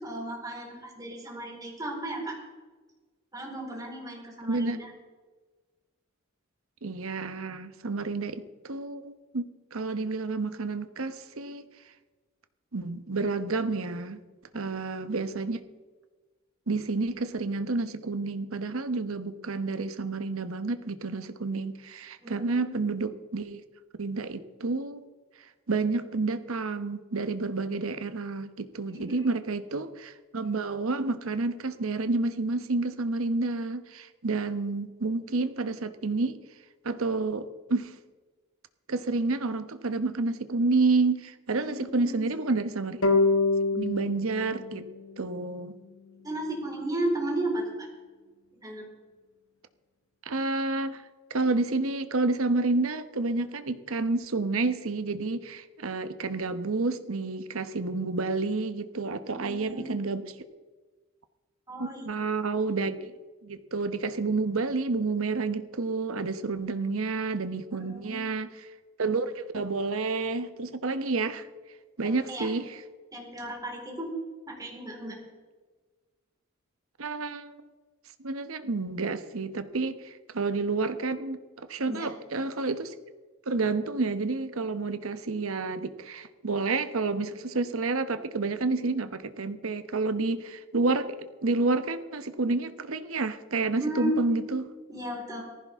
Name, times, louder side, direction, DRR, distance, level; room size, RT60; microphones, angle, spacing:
voice 1, 0.0-2.3 3.3-4.9 14.5-14.6 22.2-22.8 28.9-29.3 41.5-42.3 46.2-47.9 48.6-48.8 59.2-59.9 61.7-62.1 67.7-68.3 72.0-72.5 73.1-74.1 74.5-75.2 81.9-82.1 93.8-94.2 94.9-95.4, right 1 dB, 20° right, -2 dB, 4.5 m, -35 dB
voice 2, 4.5-4.8 6.8-11.6 12.7-14.2 14.5-15.6 16.7-23.6 24.0-25.0 25.7-36.4 36.8-37.9 38.9-43.0 43.7-44.9 45.2-45.7 50.3-51.0 51.3-60.2 61.8-63.1 63.4-68.5 69.0-71.5 72.0-72.8 77.0-77.6 78.2-82.9 83.5-94.7, right 3 dB, 75° right, 10 dB, 1.0 m, -29 dB
sound 1, 43.0-46.3, left 3 dB, 75° left, 1.2 m, -27 dB
18.5 x 15.0 x 3.6 m, 1.3 s
head